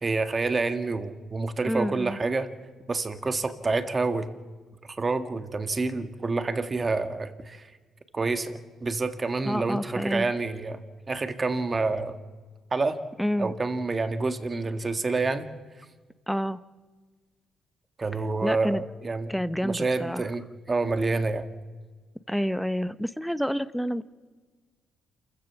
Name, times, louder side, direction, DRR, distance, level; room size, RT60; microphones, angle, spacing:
voice 1, 0.0-2.5 2.9-4.3 4.8-7.7 8.1-10.8 11.1-12.2 12.7-13.0 13.4-15.5 18.0-19.3 19.6-21.5, right 3 dB, 30° right, 9 dB, 1.6 m, -28 dB
voice 2, 1.6-2.2 9.4-10.3 13.2-13.5 16.3-16.6 18.4-18.8 19.3-20.2 22.3-24.0, equal, ahead, 15 dB, 0.7 m, -28 dB
28.0 x 15.0 x 7.1 m, 1.4 s
cardioid pair, 90°, 0 cm